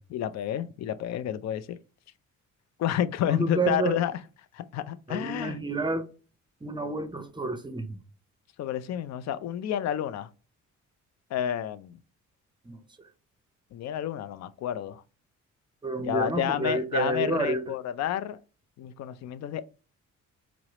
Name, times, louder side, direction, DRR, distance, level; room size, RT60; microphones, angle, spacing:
voice 1, 0.1-1.8 2.8-4.2 4.5-5.6 8.6-10.3 11.3-12.0 13.7-15.0 16.0-18.4 18.8-19.6, left 10 dB, 60° left, 0.4 m, -30 dB
voice 2, 3.3-4.0 5.1-6.1 6.6-8.0 12.7-12.8 15.8-17.7, right 3 dB, 15° right, 0.6 m, -29 dB
4.5 x 2.0 x 2.8 m
cardioid pair, 90°, 30 cm